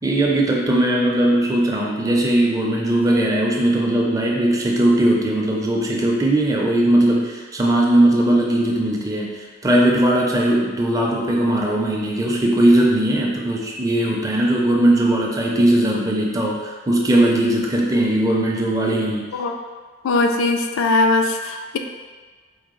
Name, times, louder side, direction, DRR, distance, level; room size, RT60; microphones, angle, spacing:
voice 1, 0.0-19.3, right 1 dB, 15° right, -2 dB, 0.4 m, -19 dB
voice 2, 20.0-21.8, left 2 dB, 75° left, 4 dB, 0.3 m, -20 dB
4.5 x 2.3 x 3.0 m, 1.4 s
head